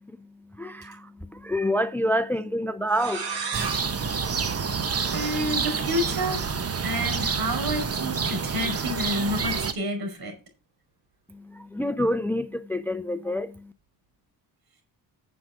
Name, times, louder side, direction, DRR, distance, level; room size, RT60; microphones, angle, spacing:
voice 1, 0.6-3.3 4.2-4.5 11.3-13.7, equal, 5° left, 0.5 m, -28 dB
sound 1, 2.9-5.5, right 5 dB, 85° right, 4.5 m, -35 dB
sound 2, 3.5-9.7, right 5 dB, 35° right, 1.2 m, -28 dB
voice 2, 4.2-4.6 5.1-6.5 6.8-10.3, equal, 55° right, 5.5 m, -29 dB
9.7 x 7.5 x 4.9 m
cardioid pair, 115°, 42 cm